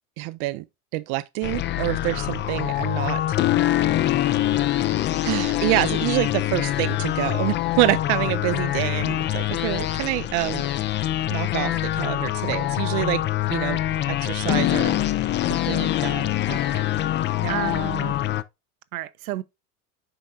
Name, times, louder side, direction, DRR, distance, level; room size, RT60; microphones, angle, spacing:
voice 1, 0.2-0.6 0.9-3.4 5.2-13.8 14.1-15.2 15.5-16.3 17.4-17.5, right 19 dB, 45° right, 0.5 m, -27 dB
sound 1, 1.4-18.4, left 13 dB, 25° left, 0.5 m, -24 dB
voice 2, 16.5-16.9 17.5-18.2 18.9-19.4, right 16 dB, 70° right, 0.9 m, -32 dB
8.9 x 5.5 x 2.6 m
hypercardioid pair, 85°, 44 cm